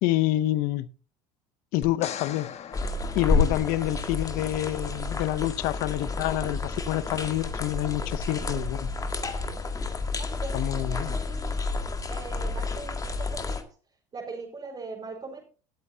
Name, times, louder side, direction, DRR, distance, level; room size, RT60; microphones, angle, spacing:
voice 1, 0.0-0.9 1.7-2.5 3.1-8.9 10.5-11.2, left 15 dB, 65° left, 0.8 m, -27 dB
sound 1, 1.8-4.1 7.5-7.6, left 9 dB, 45° left, 1.4 m, -40 dB
sound 2, 2.7-13.6, left 3 dB, 20° left, 1.9 m, -30 dB
voice 2, 10.2-11.7 12.1-13.7 14.1-15.4, right 4 dB, 30° right, 4.6 m, -40 dB
19.5 x 8.4 x 2.8 m
supercardioid pair, 85°, 16 cm